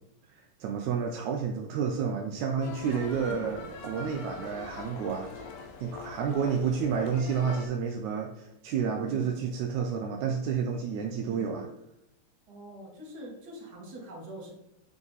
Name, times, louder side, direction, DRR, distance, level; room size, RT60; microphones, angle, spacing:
voice 1, 0.3-5.3 5.8-11.7, right 6 dB, 80° right, 2 dB, 1.9 m, -30 dB
sound 1, 2.6-7.7, left 4 dB, 90° left, 2.3 m, -43 dB
voice 2, 3.2-3.6 9.0-9.4 11.2-11.6 12.5-14.5, right 1 dB, 35° right, -4 dB, 2.2 m, -45 dB
9.2 x 3.6 x 4.0 m, 0.83 s
omnidirectional pair, 3.5 m